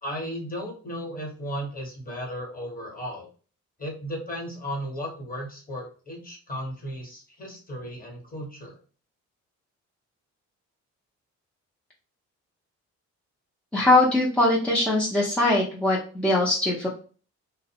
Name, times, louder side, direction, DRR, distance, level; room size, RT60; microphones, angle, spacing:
voice 1, 0.0-3.3 3.8-8.8, equal, 30° left, 0 dB, 1.1 m, -35 dB
voice 2, 13.7-16.9, left 2 dB, 5° left, -4 dB, 0.6 m, -21 dB
2.6 x 2.0 x 2.8 m, 0.38 s
cardioid pair, 90°, 30 cm